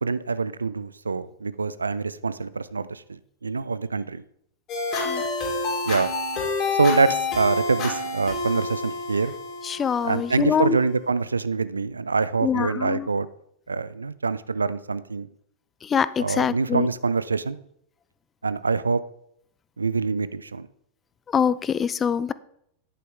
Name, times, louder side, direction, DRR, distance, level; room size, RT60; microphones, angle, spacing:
voice 1, 0.0-4.2 5.9-6.1 6.7-9.3 10.0-13.3 13.7-15.3 16.2-17.6 18.4-19.0 19.8-20.7, right 4 dB, 75° right, 17 dB, 0.4 m, -25 dB
sound 1, 4.7-10.7, left 3 dB, 35° left, 3.2 m, -28 dB
voice 2, 9.6-10.8 12.4-13.1 15.8-16.9 21.3-22.3, left 7 dB, 20° left, 17 dB, 0.4 m, -24 dB
10.5 x 8.5 x 3.6 m, 0.71 s
figure-of-eight pair, 90°, 0 cm